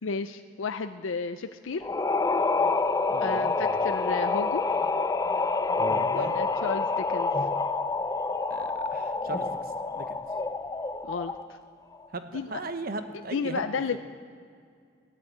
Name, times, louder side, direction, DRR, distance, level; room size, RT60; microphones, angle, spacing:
voice 1, 0.0-1.9 3.2-4.6 6.1-7.3 11.0-11.3 12.3-12.5 13.3-14.0, left 5 dB, 85° left, 9 dB, 0.5 m, -32 dB
sound 1, 1.8-11.5, left 3 dB, 20° left, 0.4 m, -27 dB
voice 2, 3.1-3.5 5.9-6.3 8.5-9.6 9.9-10.2 12.1-13.6, right 3 dB, 50° right, 8 dB, 1.0 m, -38 dB
16.0 x 11.0 x 8.4 m, 2.2 s
head